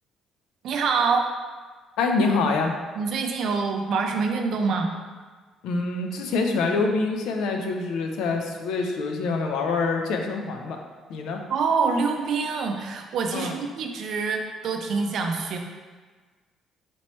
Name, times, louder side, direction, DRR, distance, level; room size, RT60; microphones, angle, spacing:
voice 1, 0.6-1.3 3.0-4.9 11.5-15.6, right 4 dB, 55° right, 3 dB, 0.4 m, -25 dB
voice 2, 2.0-2.8 5.6-10.8 11.1-11.4 13.3-13.6, left 3 dB, 85° left, 3 dB, 0.5 m, -25 dB
4.3 x 3.0 x 3.0 m, 1.4 s
cardioid pair, 155°, 0 cm